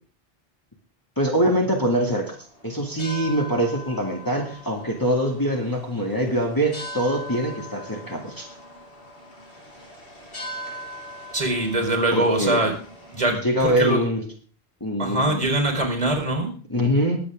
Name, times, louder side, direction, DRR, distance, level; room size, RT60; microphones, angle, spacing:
voice 1, 1.2-2.4 2.6-8.5 12.1-12.6 13.3-14.2 14.8-15.4 16.7-17.2, right 1 dB, 20° left, -1 dB, 2.4 m, -23 dB
sound 1, 2.3-13.2, left 1 dB, 65° left, 5.4 m, -40 dB
voice 2, 11.3-12.7 13.1-14.0 15.0-16.5, right 1 dB, 35° right, 3 dB, 4.5 m, -23 dB
21.5 x 8.5 x 3.7 m, 0.41 s
omnidirectional pair, 1.0 m